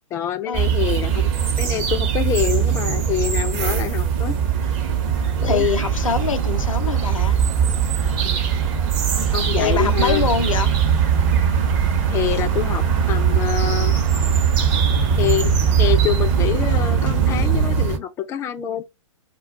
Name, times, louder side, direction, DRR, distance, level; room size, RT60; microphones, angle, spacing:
voice 1, 0.1-4.4 5.4-5.7 8.2-8.4 9.3-10.2 12.1-13.9 15.2-18.8, left 11 dB, 15° left, 0.3 m, -26 dB
sound 1, 0.5-18.0, right 7 dB, 35° right, 0.7 m, -21 dB
sound 2, 2.1-2.2 2.7-17.9, right 7 dB, 80° right, 0.6 m, -25 dB
voice 2, 5.4-7.4 9.6-10.7, left 6 dB, 80° left, 0.6 m, -24 dB
2.2 x 2.2 x 3.7 m
figure-of-eight pair, 120°, 17 cm